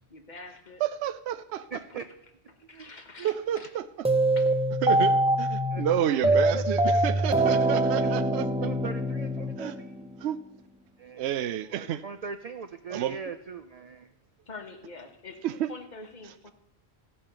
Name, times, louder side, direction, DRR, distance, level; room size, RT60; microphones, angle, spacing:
voice 1, 0.1-0.8 2.8-3.7 4.4-4.5 14.5-15.4 15.7-16.5, left 3 dB, 45° left, 1.4 m, -45 dB
voice 2, 0.8-1.6 3.2-4.1 4.8-8.7 9.6-9.7 10.2-10.4 11.2-12.0 12.9-13.2 15.4-15.7, right 11 dB, 80° right, 0.8 m, -30 dB
voice 3, 1.7-2.1 2.7-2.9 3.2-3.3 5.7-5.9 6.3-6.6 8.0-8.2 8.6-9.9 11.0-14.1, right 5 dB, 45° right, 0.5 m, -40 dB
sound 1, 4.0-10.2, right 1 dB, 5° right, 0.6 m, -24 dB
14.5 x 5.6 x 6.8 m
omnidirectional pair, 1.1 m